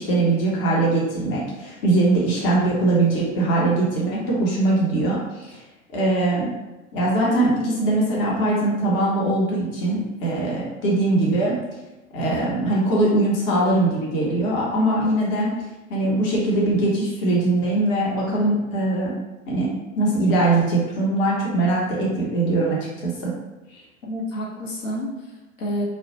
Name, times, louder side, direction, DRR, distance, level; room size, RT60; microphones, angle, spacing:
voice 1, 0.0-5.6 5.9-6.5 6.9-11.5 12.1-15.5 15.9-19.1 19.5-19.7 20.0-23.3, right 2 dB, 35° left, -4 dB, 0.7 m, -21 dB
voice 2, 24.0-25.8, equal, 65° left, -4 dB, 0.7 m, -29 dB
2.2 x 2.1 x 2.7 m, 1.1 s
figure-of-eight pair, 95°, 41 cm